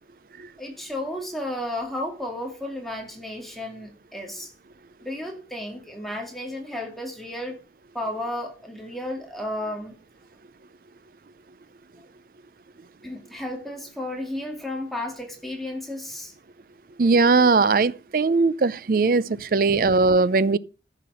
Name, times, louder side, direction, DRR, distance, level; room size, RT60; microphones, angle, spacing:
voice 1, 0.6-4.5 5.0-7.6 7.9-10.0 13.0-16.3, left 1 dB, ahead, 2.3 m, -33 dB
voice 2, 17.0-20.6, right 4 dB, 50° right, 0.4 m, -19 dB
14.5 x 5.9 x 5.6 m
head